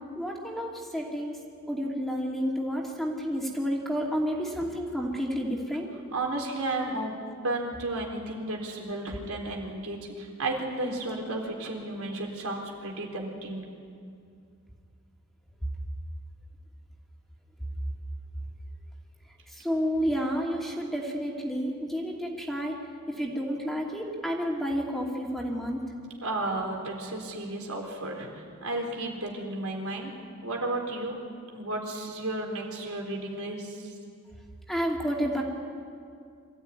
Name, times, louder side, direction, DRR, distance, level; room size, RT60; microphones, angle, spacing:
voice 1, 0.1-1.4 1.7-5.9 19.5-22.8 23.1-25.8 34.7-35.4, equal, ahead, -1 dB, 2.7 m, -30 dB
voice 2, 6.1-7.1 7.4-13.7 26.2-30.1 30.4-31.1 31.5-33.9, right 2 dB, 85° right, 1 dB, 4.1 m, -33 dB
25.0 x 15.0 x 9.7 m, 2.3 s
head